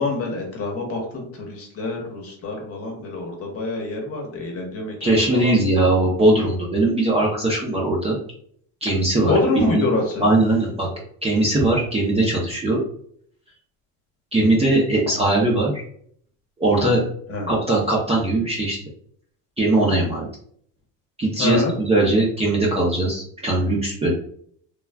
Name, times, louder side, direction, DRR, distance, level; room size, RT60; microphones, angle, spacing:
voice 1, 0.0-5.5 9.2-10.3 17.3-17.5 21.4-21.7, left 2 dB, 35° left, 1 dB, 0.9 m, -26 dB
voice 2, 5.0-8.2 8.8-9.8 10.2-10.9 11.2-12.8 14.3-15.8 16.6-17.0 17.5-18.8 19.6-20.2 21.2-24.1, right 2 dB, 15° right, -4 dB, 0.5 m, -20 dB
3.4 x 2.3 x 2.2 m, 0.62 s
cardioid pair, 125°, 39 cm